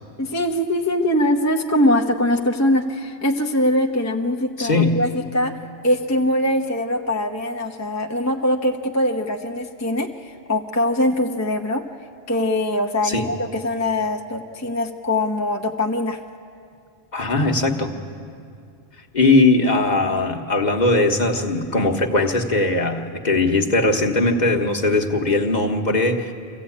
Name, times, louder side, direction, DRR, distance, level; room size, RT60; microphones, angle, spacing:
voice 1, 0.2-5.5 5.8-11.8 12.3-16.2, left 1 dB, 15° left, 2 dB, 0.8 m, -22 dB
voice 2, 4.6-5.0 13.0-13.3 17.1-17.9 19.1-26.3, left 2 dB, 45° left, 2 dB, 1.4 m, -19 dB
25.0 x 15.0 x 8.6 m, 2.5 s
omnidirectional pair, 1.1 m